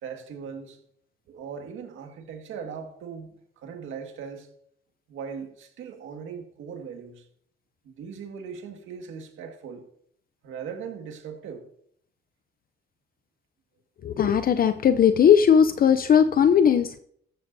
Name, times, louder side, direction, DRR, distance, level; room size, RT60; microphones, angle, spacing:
voice 1, 0.0-0.8 1.3-3.3 3.6-4.5 5.1-7.3 7.8-9.8 10.4-11.6, right 6 dB, 80° right, 1.9 m, -39 dB
voice 2, 14.0-17.0, left 8 dB, 45° left, 0.6 m, -18 dB
14.0 x 11.5 x 2.7 m
cardioid pair, 90°, 20 cm